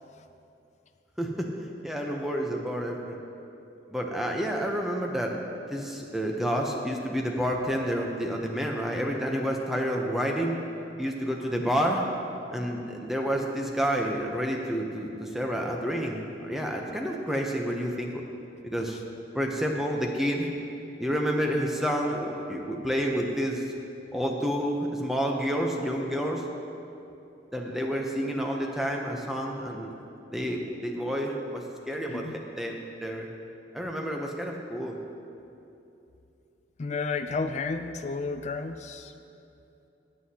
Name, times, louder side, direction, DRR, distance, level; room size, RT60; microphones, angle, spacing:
voice 1, 1.2-3.2 3.9-5.4 5.7-10.6 11.0-12.1 12.5-18.2 18.6-19.0 19.3-20.5 21.0-23.6 24.1-26.4 27.5-29.9 30.3-33.3 33.7-35.0, equal, ahead, 0 dB, 0.7 m, -29 dB
voice 2, 36.8-39.1, left 4 dB, 35° left, 8 dB, 0.3 m, -32 dB
22.5 x 7.8 x 2.9 m, 2.8 s
head